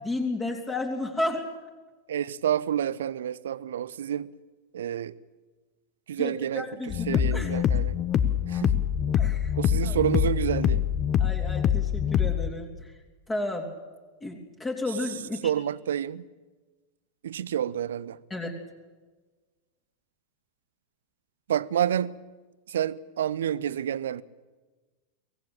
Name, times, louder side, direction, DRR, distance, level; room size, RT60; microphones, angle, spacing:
voice 1, 0.0-1.5 6.2-7.6 9.1-9.5 9.8-10.0 11.2-12.9 13.3-13.7 14.2-15.5 18.3-18.5, left 2 dB, 15° left, 3.3 m, -32 dB
voice 2, 2.1-4.3 4.7-5.1 6.1-6.7 7.1-8.0 8.5-8.8 9.6-10.8 15.4-16.3 17.2-18.2 21.5-22.2 22.7-24.2, right 10 dB, 60° right, 0.7 m, -28 dB
sound 1, 6.9-12.5, left 9 dB, 30° left, 1.2 m, -25 dB
24.0 x 17.5 x 9.0 m
figure-of-eight pair, 90°, 0 cm